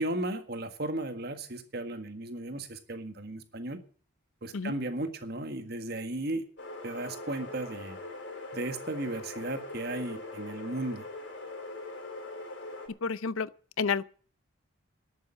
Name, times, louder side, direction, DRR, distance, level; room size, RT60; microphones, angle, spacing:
voice 1, 0.0-3.8 4.4-6.4 6.8-8.0 8.5-11.0, right 1 dB, 50° right, 1.7 m, -35 dB
sound 1, 6.6-12.9, left 2 dB, 55° left, 3.7 m, -42 dB
voice 2, 13.0-13.5 13.8-14.0, left 5 dB, 85° left, 0.6 m, -29 dB
11.5 x 8.5 x 8.8 m
head